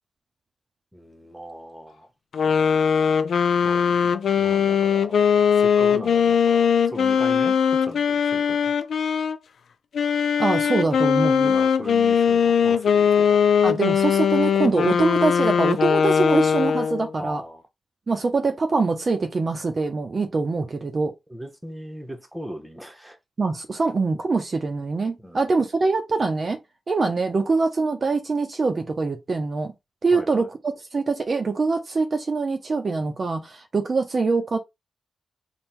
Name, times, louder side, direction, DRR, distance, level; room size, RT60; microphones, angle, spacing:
voice 1, 0.9-2.1 3.6-8.7 11.4-13.5 17.2-17.6 21.3-23.2 25.2-25.5 30.1-30.5, equal, 5° right, 0.9 m, -39 dB
sound 1, 2.3-9.4 9.9-17.1, left 7 dB, 75° left, 0.4 m, -20 dB
voice 2, 10.4-11.5 13.6-17.4 18.1-21.1 23.4-26.6 26.9-29.7 30.0-30.5 30.9-34.6, right 3 dB, 40° right, 0.6 m, -24 dB
3.6 x 2.3 x 4.4 m
wide cardioid pair, 100°, 0 cm